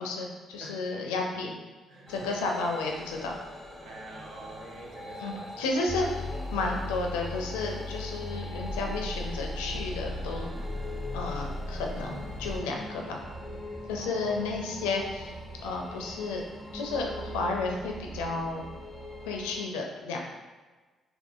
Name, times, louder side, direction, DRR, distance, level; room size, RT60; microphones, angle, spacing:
voice 1, 0.0-1.5 2.1-3.4 5.2-6.2 6.5-10.5 11.1-13.2 13.9-15.3 15.6-16.4 16.7-18.6 19.3-20.2, left 3 dB, 75° left, 1 dB, 0.4 m, -32 dB
voice 2, 1.9-2.6 3.8-6.5 14.0-14.8, right 2 dB, 60° right, -1 dB, 0.6 m, -46 dB
sound 1, 2.1-19.6, equal, 15° right, 1.3 m, -43 dB
sound 2, 5.9-12.6, left 2 dB, 10° left, 0.4 m, -36 dB
3.6 x 2.9 x 2.4 m, 1.3 s
hypercardioid pair, 45°, 0 cm